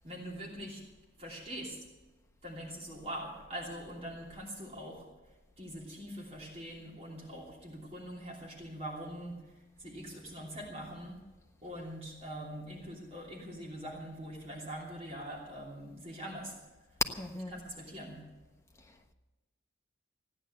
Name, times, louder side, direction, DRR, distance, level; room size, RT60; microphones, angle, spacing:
voice 1, 0.0-0.8 1.2-1.8 2.4-5.0 5.6-9.4 9.8-11.2 11.6-16.5 17.3-18.2, equal, 30° right, 3.0 m, -43 dB
voice 2, 17.2-17.6 18.9-19.1, left 1 dB, 15° left, 1.1 m, -43 dB
15.5 x 10.0 x 7.8 m
head